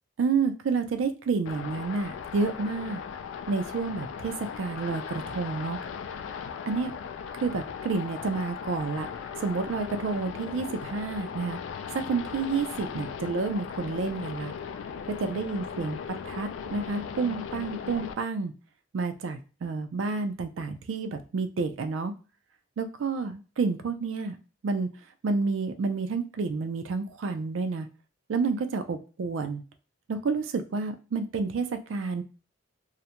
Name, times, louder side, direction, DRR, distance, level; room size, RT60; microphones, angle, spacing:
voice 1, 0.2-3.0 3.5-5.8 6.7-6.9 7.4-9.1 9.4-11.6 11.9-14.5 15.1-16.0 16.2-18.5 18.9-22.1 22.8-24.3 24.6-24.9 25.2-27.9 28.3-29.6 30.1-32.2, right 4 dB, 90° right, 7 dB, 0.4 m, -29 dB
sound 1, 1.5-18.1, left 7 dB, 90° left, 0.3 m, -38 dB
2.4 x 2.1 x 2.8 m, 0.34 s
head